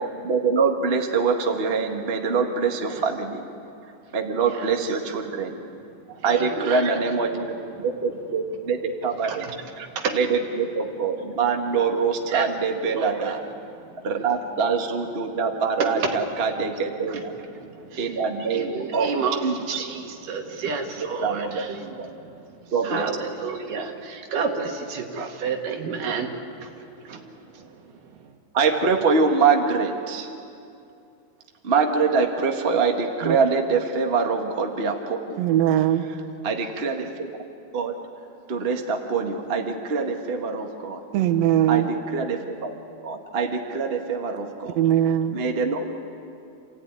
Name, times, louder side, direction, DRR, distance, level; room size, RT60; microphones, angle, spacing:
voice 1, 0.0-3.4 4.1-5.6 6.2-7.5 7.8-9.5 10.1-13.4 14.0-17.3 18.0-19.1 19.4-19.6 21.0-22.1 22.7-23.3 28.5-30.3 31.6-35.5 36.4-37.1 37.7-38.0 38.5-41.0 41.7-42.7 43.0-44.8 45.3-45.8, right 5 dB, 30° right, 3 dB, 1.1 m, -24 dB
voice 2, 6.0-7.2 7.7-7.9 9.2-10.2 12.3-12.5 13.0-13.3 13.8-14.0 16.0-16.1 17.1-26.3 26.6-28.3, right 5 dB, 90° right, 3 dB, 3.5 m, -31 dB
voice 3, 35.4-36.1 41.1-41.9 44.8-45.4, right 11 dB, 65° right, 9 dB, 2.0 m, -20 dB
28.0 x 15.5 x 9.5 m, 2.6 s
omnidirectional pair, 3.6 m